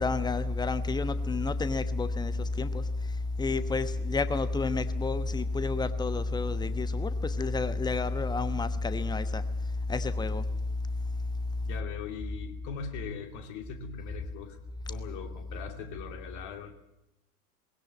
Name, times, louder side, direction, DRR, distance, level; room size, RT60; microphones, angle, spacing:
voice 1, 0.0-2.8 3.4-9.4 9.9-10.4, left 3 dB, 10° left, 1.1 m, -29 dB
voice 2, 11.6-14.6 14.9-16.7, left 6 dB, 40° left, 2.9 m, -40 dB
20.5 x 17.0 x 9.3 m
figure-of-eight pair, 90°, 44 cm